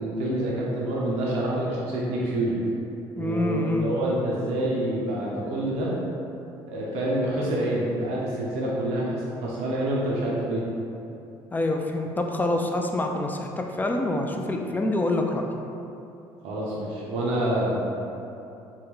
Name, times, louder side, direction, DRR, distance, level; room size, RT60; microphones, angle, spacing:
voice 1, 0.0-2.6 3.2-6.0 6.7-10.6 16.4-17.8, right 1 dB, 75° right, -5 dB, 0.6 m, -27 dB
voice 2, 3.2-3.9 11.5-13.5 13.8-15.4, left 2 dB, 15° left, 2 dB, 0.3 m, -26 dB
3.6 x 2.2 x 3.0 m, 2.8 s
supercardioid pair, 75°, 11 cm